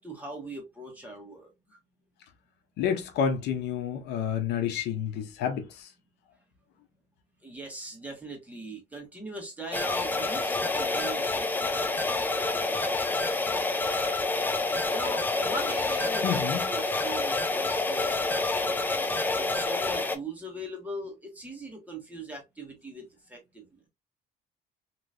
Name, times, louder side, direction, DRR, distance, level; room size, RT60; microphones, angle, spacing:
voice 1, 0.0-1.5 7.4-12.0 14.9-23.7, right 1 dB, 10° right, 1.6 m, -40 dB
voice 2, 2.8-5.9 16.2-16.7, left 8 dB, 80° left, 0.8 m, -29 dB
sound 1, 9.7-20.2, left 3 dB, 10° left, 0.5 m, -28 dB
3.0 x 3.0 x 2.5 m
cardioid pair, 110°, 17 cm